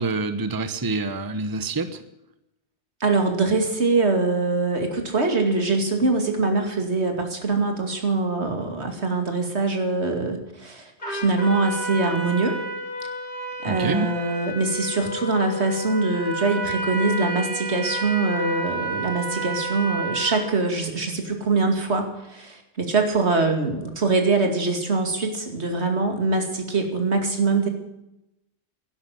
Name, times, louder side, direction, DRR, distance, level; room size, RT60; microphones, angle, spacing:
voice 1, 0.0-2.0 13.7-14.1, right 3 dB, 20° right, 11 dB, 0.9 m, -26 dB
voice 2, 3.0-12.6 13.6-27.7, right 3 dB, 80° right, 5 dB, 2.6 m, -23 dB
Trumpet, 11.0-20.6, right 2 dB, 50° left, 4.8 m, -31 dB
12.0 x 11.0 x 9.3 m, 0.88 s
omnidirectional pair, 1.1 m